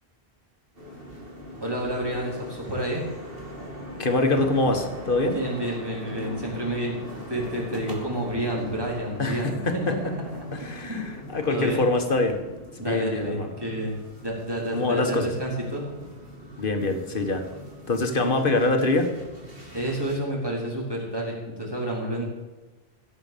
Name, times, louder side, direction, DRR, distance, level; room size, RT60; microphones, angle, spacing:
sound 1, 0.7-20.2, equal, 65° right, 2.9 m, -41 dB
voice 1, 1.6-3.1 5.3-7.0 7.3-10.4 10.8-11.2 11.5-11.8 12.8-15.8 19.7-22.2, right 1 dB, 20° right, -3 dB, 3.9 m, -30 dB
voice 2, 4.0-5.4 9.2-10.0 10.5-11.0 11.3-12.4 12.8-13.5 14.7-15.3 16.6-17.4 17.9-19.1, left 2 dB, 55° left, 6 dB, 1.7 m, -24 dB
16.0 x 8.1 x 6.8 m, 1.2 s
omnidirectional pair, 1.1 m